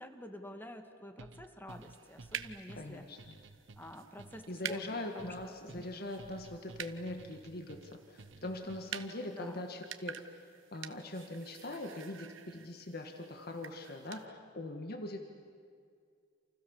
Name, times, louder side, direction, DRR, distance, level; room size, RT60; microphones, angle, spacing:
voice 1, 0.0-3.1 3.7-5.5 8.6-8.7 9.3-9.6, left 1 dB, 10° left, 6 dB, 1.9 m, -49 dB
sound 1, 1.2-9.1, right 3 dB, 70° right, 0.9 m, -54 dB
sound 2, 1.7-14.3, right 8 dB, 90° right, 1.2 m, -49 dB
voice 2, 2.8-3.4 4.5-10.4 10.7-15.2, left 1 dB, 55° left, 5 dB, 1.8 m, -42 dB
29.0 x 28.0 x 7.3 m, 2.2 s
head